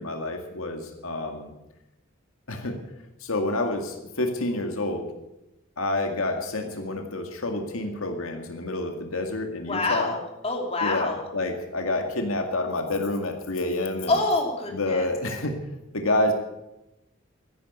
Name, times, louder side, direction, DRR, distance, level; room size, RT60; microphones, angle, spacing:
voice 1, 0.0-1.5 2.5-2.8 3.2-5.1 5.8-10.1 10.8-14.1 14.7-15.5 15.9-16.3, left 2 dB, 85° left, 4 dB, 2.1 m, -28 dB
voice 2, 9.7-11.2 14.1-15.0, left 2 dB, 30° left, 1 dB, 2.9 m, -26 dB
14.0 x 11.0 x 8.2 m, 0.91 s
head